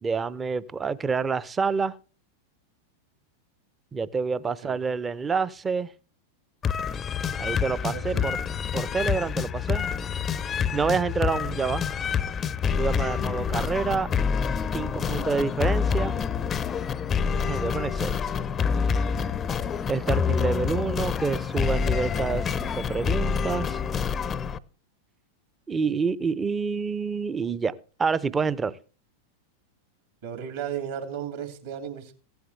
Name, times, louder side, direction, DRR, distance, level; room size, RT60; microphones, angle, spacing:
voice 1, 0.0-2.0 3.9-5.9 7.4-8.4 8.7-9.9 10.7-11.9 12.7-14.1 14.7-16.1 17.5-18.3 19.9-23.8 25.7-27.7 28.0-28.8, right 5 dB, 15° right, 0.6 m, -28 dB
sound 1, 6.6-24.6, left 6 dB, 20° left, 0.6 m, -27 dB
voice 2, 7.9-8.3 14.8-15.3 30.2-32.1, right 8 dB, 55° right, 2.4 m, -35 dB
15.0 x 11.5 x 3.3 m
figure-of-eight pair, 90°, 0 cm